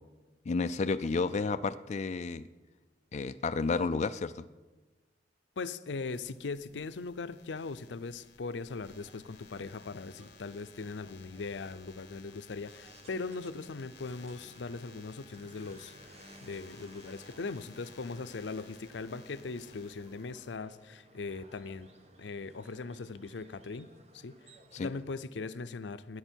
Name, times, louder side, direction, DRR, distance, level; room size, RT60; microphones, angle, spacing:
voice 1, 0.5-2.4 3.1-4.4 24.7-24.9, left 4 dB, 40° left, 10 dB, 0.4 m, -31 dB
voice 2, 5.6-21.9 22.2-24.4 24.8-26.2, left 4 dB, 85° left, 14 dB, 0.6 m, -40 dB
sound 1, 6.0-20.6, left 6 dB, 65° left, 1.1 m, -57 dB
sound 2, 8.9-25.2, right 1 dB, 40° right, 1.2 m, -58 dB
19.5 x 9.7 x 4.5 m, 1.2 s
head